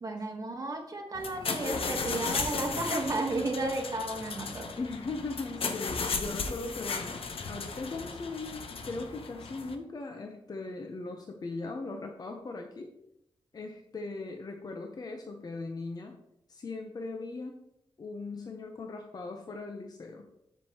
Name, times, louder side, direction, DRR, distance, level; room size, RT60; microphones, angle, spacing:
voice 1, 0.0-4.7, right 2 dB, 40° right, 2 dB, 1.2 m, -33 dB
sound 1, 1.1-9.8, left 4 dB, 75° left, 0.8 m, -35 dB
voice 2, 4.8-7.2 7.5-12.9 13.5-16.2 16.5-17.6 18.0-20.3, left 3 dB, 45° left, 4 dB, 0.7 m, -39 dB
7.5 x 7.3 x 2.9 m, 0.79 s
wide cardioid pair, 145°, 10 cm